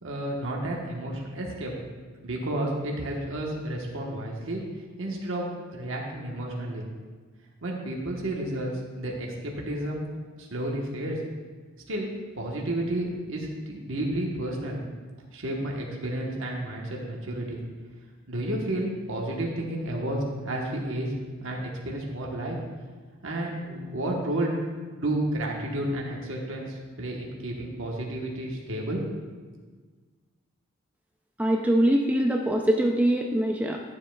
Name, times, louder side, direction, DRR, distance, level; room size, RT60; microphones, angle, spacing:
voice 1, 0.0-1.7 2.2-4.6 5.0-6.9 7.6-10.1 10.4-11.2 11.9-12.1 12.4-14.8 15.3-17.6 18.3-21.1 21.4-22.5 23.2-24.6 25.0-29.0, right 1 dB, 70° right, -2 dB, 1.2 m, -31 dB
voice 2, 31.4-33.8, right 1 dB, 10° right, 1 dB, 0.4 m, -23 dB
11.5 x 7.5 x 2.3 m, 1.5 s
head